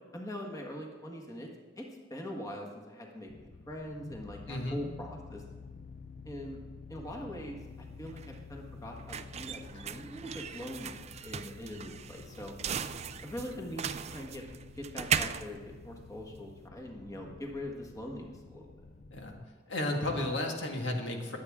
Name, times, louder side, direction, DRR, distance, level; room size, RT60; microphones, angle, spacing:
voice 1, 0.1-1.5 1.8-5.4 6.2-6.6 6.9-12.5 13.2-14.4 14.7-18.7, left 1 dB, 20° left, 0 dB, 1.5 m, -42 dB
sound 1, 3.3-19.5, left 4 dB, 40° left, 0.5 m, -50 dB
voice 2, 4.5-4.9 19.1-19.4 19.7-21.4, left 1 dB, 70° left, 2 dB, 1.8 m, -33 dB
sound 2, 7.6-16.6, right 7 dB, 35° right, 0.4 m, -38 dB
22.0 x 8.4 x 3.7 m, 1.5 s
head